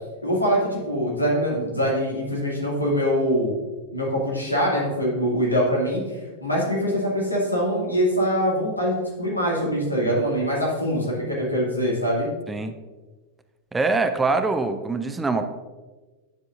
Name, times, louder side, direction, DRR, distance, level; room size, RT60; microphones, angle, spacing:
voice 1, 0.2-3.5 3.9-12.3, equal, 85° left, -4 dB, 2.3 m, -23 dB
voice 2, 13.7-15.4, right 3 dB, 10° right, 9 dB, 0.5 m, -23 dB
10.0 x 7.4 x 2.6 m, 1.3 s
figure-of-eight pair, 90°, 0 cm